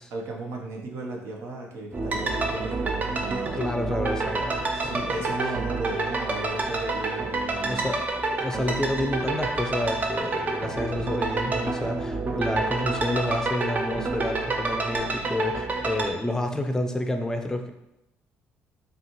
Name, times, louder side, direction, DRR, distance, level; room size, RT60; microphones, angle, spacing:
voice 1, 0.1-3.6 4.8-7.9, right 2 dB, 65° right, 0 dB, 0.8 m, -35 dB
sound 1, 1.9-16.1, right 3 dB, 35° right, 0.6 m, -28 dB
voice 2, 3.5-5.2 7.6-8.0 8.4-17.7, left 1 dB, 10° left, 5 dB, 0.5 m, -29 dB
5.0 x 2.4 x 3.0 m, 0.86 s
supercardioid pair, 80°, 5 cm